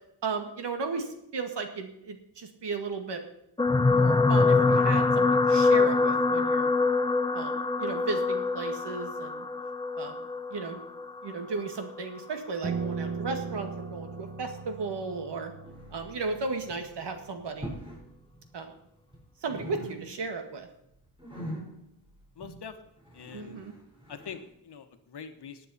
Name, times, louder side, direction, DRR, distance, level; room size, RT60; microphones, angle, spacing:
voice 1, 0.2-3.2 3.9-6.7 7.3-9.5 10.0-10.2 10.5-10.8 11.2-15.5 15.9-17.8 18.5-18.7 19.4-20.7 23.3-23.7, right 4 dB, 80° right, 6 dB, 2.0 m, -35 dB
sound 1, 3.6-12.0 12.8-13.0 13.3-13.4, left 3 dB, 10° left, 0.5 m, -24 dB
Piano, 12.6-17.9, right 5 dB, 40° right, 1.7 m, -38 dB
sound 2, 15.6-16.3 16.6-17.0 17.5-18.1 18.3-19.2 19.5-20.4 20.7-24.5, equal, 15° right, 4.1 m, -43 dB
voice 2, 22.4-22.8 23.1-23.6 24.1-25.7, left 6 dB, 75° left, 8 dB, 1.4 m, -43 dB
18.0 x 9.2 x 4.3 m, 0.79 s
wide cardioid pair, 140°, 41 cm